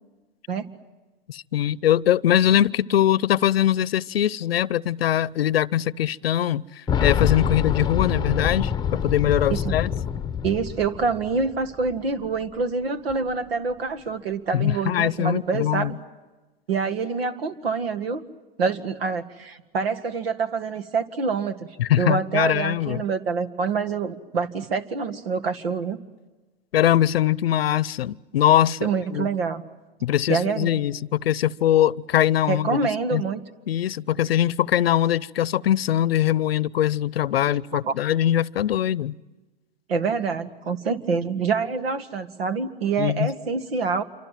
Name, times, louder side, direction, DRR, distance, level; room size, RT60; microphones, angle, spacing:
voice 1, 1.3-6.6 7.0-9.9 14.5-16.0 21.8-23.0 26.7-29.3 30.0-32.8 33.1-33.2 33.7-39.1 43.0-43.3, left 11 dB, 85° left, 22 dB, 0.8 m, -22 dB
Boom, 6.9-11.6 11.9-12.0 13.1-13.2, left 8 dB, 15° left, 0.9 m, -25 dB
voice 2, 10.4-15.9 16.7-18.3 18.6-21.7 22.0-26.0 28.8-29.6 30.3-30.8 32.5-33.4 37.4-37.9 39.9-44.0, right 5 dB, 85° right, 12 dB, 2.0 m, -26 dB
27.5 x 25.0 x 7.6 m, 1.2 s
hypercardioid pair, 120°, 29 cm